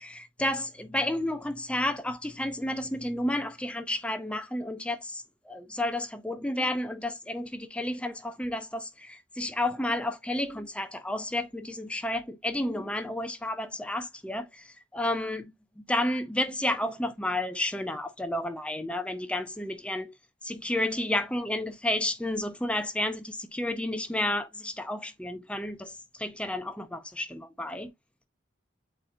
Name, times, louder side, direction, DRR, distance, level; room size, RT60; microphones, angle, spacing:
voice 1, 0.0-15.5 15.9-20.1 20.4-27.9, left 1 dB, 5° left, 0.5 m, -31 dB
8.8 x 4.3 x 2.5 m
head